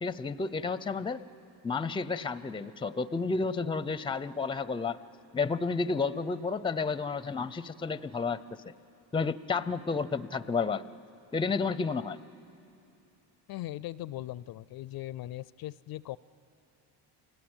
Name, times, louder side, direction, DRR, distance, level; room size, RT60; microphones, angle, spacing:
voice 1, 0.0-1.2 1.6-5.0 5.3-8.7 9.1-10.8 11.3-12.2, left 4 dB, 10° left, 16 dB, 0.6 m, -31 dB
voice 2, 13.5-16.2, left 14 dB, 55° left, 20 dB, 0.5 m, -39 dB
29.0 x 18.5 x 8.9 m, 2.7 s
cardioid pair, 100°, 43 cm